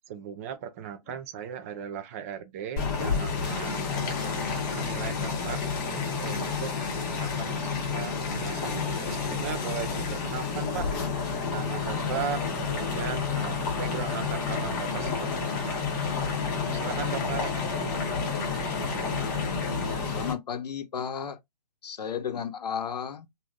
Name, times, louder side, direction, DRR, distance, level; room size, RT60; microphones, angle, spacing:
voice 1, 0.1-3.9 4.7-5.6 6.2-6.7 7.2-10.9 11.5-15.9 16.3-17.5, right 8 dB, 20° right, 0.4 m, -37 dB
sound 1, 2.8-20.3, left 5 dB, 30° left, 0.8 m, -30 dB
voice 2, 20.1-21.4 21.8-23.3, left 7 dB, 70° left, 0.7 m, -34 dB
3.0 x 2.6 x 2.4 m
hypercardioid pair, 140°, 21 cm